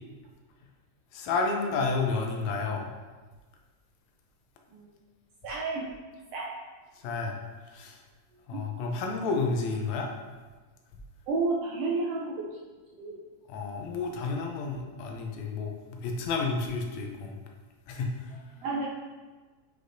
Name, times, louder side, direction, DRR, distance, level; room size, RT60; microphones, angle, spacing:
voice 1, 1.1-2.9 7.0-7.4 7.7-8.0 8.5-10.1 13.5-15.7 16.0-17.4 17.9-18.3, left 4 dB, 80° left, 2 dB, 2.0 m, -30 dB
voice 2, 5.4-5.9 6.3-6.5 8.5-8.6 11.3-12.5 12.9-13.2 18.6-18.9, right 3 dB, 75° right, -2 dB, 1.5 m, -30 dB
8.0 x 5.0 x 2.6 m, 1.3 s
omnidirectional pair, 3.3 m